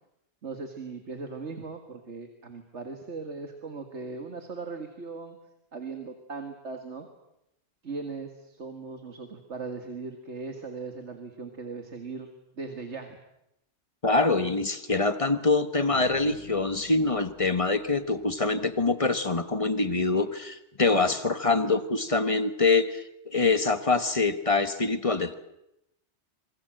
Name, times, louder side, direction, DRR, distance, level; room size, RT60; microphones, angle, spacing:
voice 1, 0.4-5.4 5.7-7.1 7.8-12.3 12.5-13.2 14.4-14.5, right 4 dB, 70° right, 5 dB, 2.2 m, -38 dB
voice 2, 14.0-25.3, left 3 dB, 30° left, 10 dB, 1.3 m, -25 dB
sound 1, 15.9-18.9, right 1 dB, 65° left, 8.2 m, -52 dB
26.5 x 22.0 x 7.7 m, 0.84 s
omnidirectional pair, 1.2 m